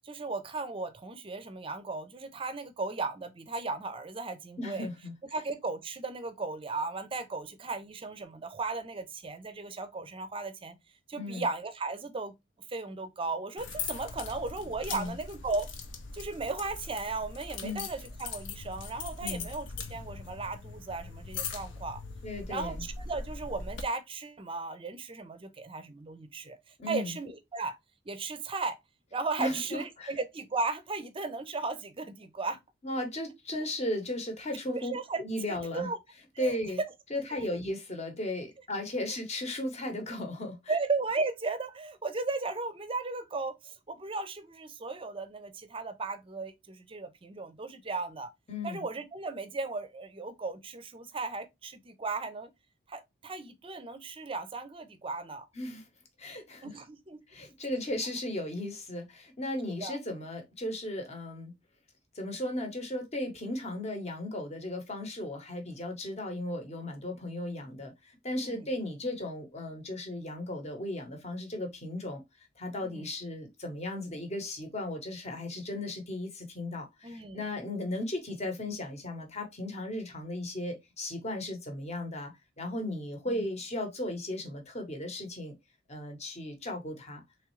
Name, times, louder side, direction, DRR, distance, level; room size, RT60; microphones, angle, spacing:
voice 1, 0.0-4.9 5.3-10.7 11.1-12.3 12.7-15.7 16.1-22.0 22.5-27.8 28.1-28.8 29.1-32.6 34.7-35.2 35.5-36.0 36.4-36.5 37.3-37.5 40.7-48.3 48.6-52.5 52.9-55.5 56.6-57.2 59.7-60.0 68.4-68.7 72.8-73.1 77.0-77.5 83.3-83.4, right 3 dB, 25° right, 0.5 m, -36 dB
voice 2, 4.6-5.1 11.2-11.5 14.9-15.1 17.6-17.9 19.2-19.5 22.2-22.8 26.8-27.2 29.4-30.1 32.8-34.9 35.2-35.9 36.4-36.8 37.1-40.6 48.5-48.8 55.5-55.8 56.2-56.8 57.3-61.5 62.1-72.2 72.6-85.5 85.9-87.2, left 1 dB, 35° left, 0.9 m, -36 dB
sound 1, 13.6-23.8, left 4 dB, 65° left, 0.6 m, -41 dB
3.6 x 3.1 x 3.1 m
head